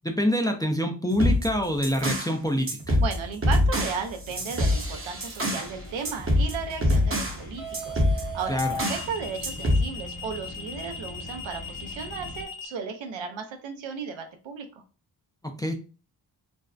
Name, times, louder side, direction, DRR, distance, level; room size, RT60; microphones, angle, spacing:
voice 1, 0.0-3.0 8.5-8.7 15.6-15.7, equal, 10° left, 4 dB, 0.3 m, -26 dB
sound 1, 1.1-2.3 2.7-5.7 6.0-7.4 7.7-9.1 9.4-9.9, left 1 dB, 30° right, 0.7 m, -25 dB
voice 2, 3.0-14.7, right 6 dB, 90° right, 5 dB, 0.6 m, -35 dB
sound 2, 4.3-4.6 7.6-12.7, left 3 dB, 75° left, 0.8 m, -37 dB
sound 3, 5.6-12.4, left 1 dB, 50° left, 0.6 m, -43 dB
2.5 x 2.1 x 2.3 m, 0.34 s
cardioid pair, 60°, 45 cm